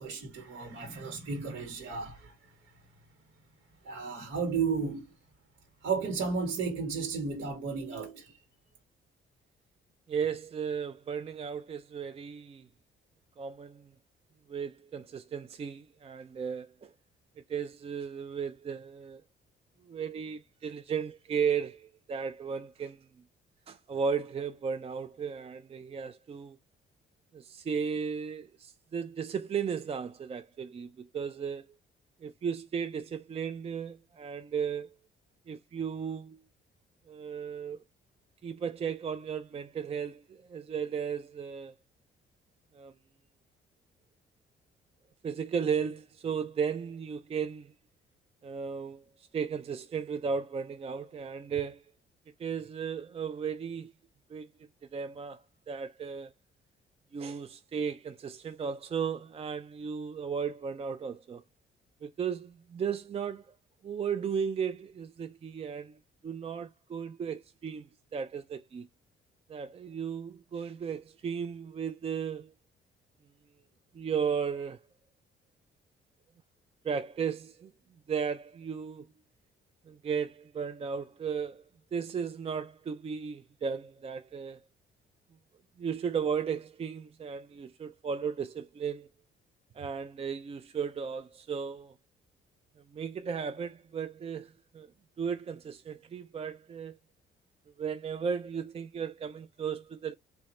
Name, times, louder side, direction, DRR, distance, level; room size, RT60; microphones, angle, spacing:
voice 1, 0.0-2.3 3.8-5.0 5.8-8.3, right 5 dB, 75° right, 1.2 m, -33 dB
voice 2, 10.1-12.7 13.4-13.9 14.5-16.9 17.5-19.2 19.8-23.1 23.7-26.6 27.3-31.7 32.2-35.0 35.5-36.4 37.1-37.8 38.4-41.7 42.7-42.9 45.2-47.7 48.4-51.9 52.4-53.9 54.3-54.5 54.8-56.3 57.1-61.4 62.0-63.5 63.8-66.0 66.2-68.9 69.5-72.5 73.9-74.8 76.8-77.7 78.1-79.1 79.9-81.6 81.9-84.6 85.8-89.1 89.7-91.9 92.9-94.9 95.2-97.0 97.8-100.1, right 6 dB, 30° right, 0.4 m, -35 dB
3.4 x 2.1 x 4.1 m
cardioid pair, 90°, 20 cm